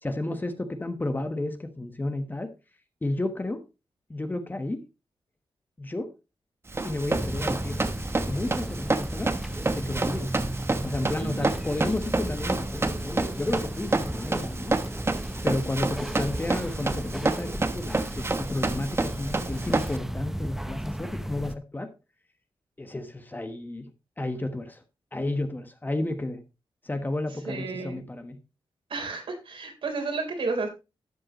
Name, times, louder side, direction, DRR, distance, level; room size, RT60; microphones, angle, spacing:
voice 1, 0.0-2.5 3.0-3.6 4.1-4.8 5.8-6.1 6.8-7.8 8.2-9.4 9.7-10.3 10.8-14.7 15.4-21.9 22.8-23.9 24.2-24.8 25.1-26.4 26.8-28.4, left 2 dB, 20° left, 1.3 m, -32 dB
Run, 6.7-20.0, right 3 dB, 30° right, 1.0 m, -29 dB
sound 1, 7.1-21.6, equal, 5° right, 0.7 m, -35 dB
voice 2, 11.2-11.5 27.4-28.0 28.9-30.7, right 3 dB, 80° right, 3.9 m, -32 dB
12.0 x 7.7 x 3.1 m
wide cardioid pair, 95°, 9 cm